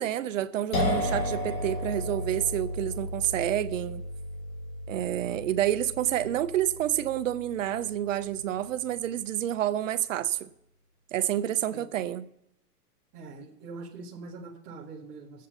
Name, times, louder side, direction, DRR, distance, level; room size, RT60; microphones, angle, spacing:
voice 1, 0.0-4.0 4.9-10.5 11.1-12.2, right 12 dB, 55° right, 0.7 m, -29 dB
sound 1, 0.7-8.3, left 1 dB, 55° left, 2.9 m, -33 dB
voice 2, 13.1-15.5, right 3 dB, 10° right, 0.4 m, -43 dB
19.5 x 7.5 x 4.1 m
hypercardioid pair, 160°, 48 cm